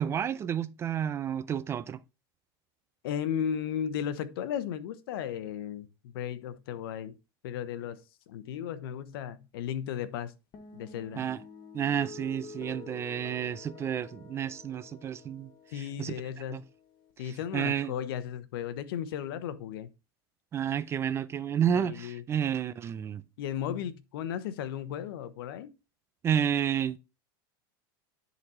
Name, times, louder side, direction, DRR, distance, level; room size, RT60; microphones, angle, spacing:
voice 1, 0.0-2.0 11.2-11.4 11.7-16.2 16.5-16.6 17.5-17.9 20.5-23.2 26.2-27.0, right 9 dB, 20° right, 0.4 m, -30 dB
voice 2, 3.0-7.2 7.4-10.3 10.7-11.3 15.7-16.7 17.2-19.9 21.7-22.2 23.4-25.7, left 9 dB, 75° left, 1.0 m, -35 dB
sound 1, 10.5-17.1, left 4 dB, 35° left, 1.6 m, -49 dB
10.5 x 4.1 x 4.3 m
supercardioid pair, 145°, 12 cm